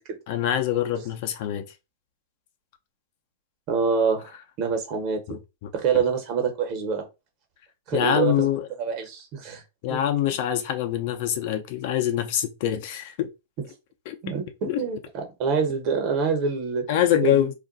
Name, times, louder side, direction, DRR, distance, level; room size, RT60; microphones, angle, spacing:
voice 1, 0.3-1.6 5.3-5.7 7.9-8.7 9.8-13.3 14.1-14.2 14.7-14.8 16.9-17.5, left 11 dB, 60° left, 0.6 m, -24 dB
voice 2, 3.7-5.4 5.7-7.1 7.9-9.6 9.9-10.0 14.2-16.9 17.2-17.5, right 5 dB, 45° right, 1.2 m, -26 dB
2.5 x 2.2 x 3.9 m
hypercardioid pair, 115°, 0 cm